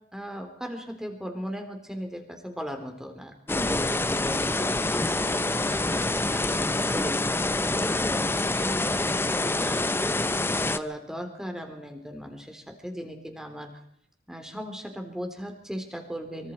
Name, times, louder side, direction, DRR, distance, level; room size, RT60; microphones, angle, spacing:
voice 1, 0.1-7.5 7.8-13.8 14.3-16.5, equal, 5° right, 4 dB, 3.9 m, -38 dB
sound 1, 3.5-10.8, left 2 dB, 15° left, 0.8 m, -26 dB
24.5 x 24.5 x 4.7 m, 0.68 s
head